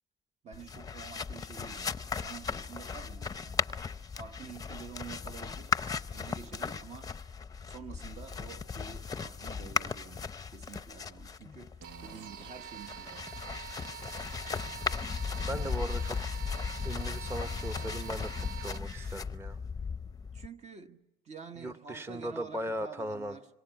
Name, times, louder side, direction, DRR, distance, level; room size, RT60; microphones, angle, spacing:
voice 1, 0.4-3.7 4.2-5.8 6.1-7.2 7.6-13.3 20.3-23.5, right 6 dB, 40° right, 1.3 m, -48 dB
sound 1, 0.5-20.5, left 5 dB, 20° left, 0.7 m, -37 dB
sound 2, 11.8-19.2, right 10 dB, 85° right, 1.0 m, -46 dB
voice 2, 15.4-16.2 16.8-19.6 21.6-23.4, right 1 dB, 15° right, 1.0 m, -38 dB
26.0 x 25.0 x 5.9 m
cardioid pair, 110°, 17 cm